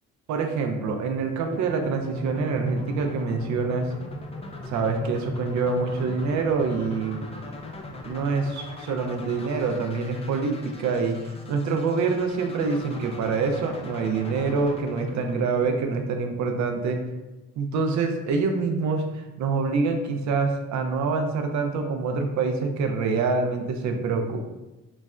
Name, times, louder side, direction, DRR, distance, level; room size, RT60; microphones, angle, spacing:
voice 1, 0.3-3.9 4.7-7.3 8.1-17.0 17.6-24.4, right 4 dB, 70° right, 4 dB, 0.5 m, -26 dB
sound 1, 1.5-16.4, left 2 dB, 20° left, 0.4 m, -40 dB
4.0 x 2.0 x 2.4 m, 1.0 s
cardioid pair, 90°, 30 cm